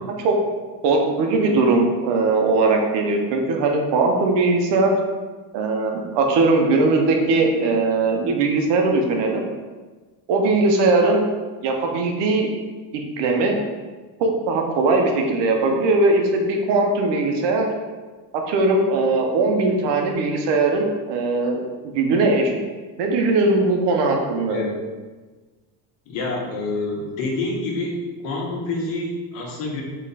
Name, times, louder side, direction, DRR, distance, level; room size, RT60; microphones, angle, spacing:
voice 1, 0.8-4.9 5.5-9.5 10.3-11.2 11.6-12.5 12.9-13.6 14.2-17.7 18.5-21.6 21.9-22.5 23.0-24.6, right 3 dB, 60° right, 2 dB, 1.0 m, -20 dB
voice 2, 24.5-24.8 26.1-29.8, left 2 dB, 70° left, -1 dB, 1.4 m, -27 dB
4.0 x 3.2 x 4.1 m, 1.3 s
supercardioid pair, 100°, 48 cm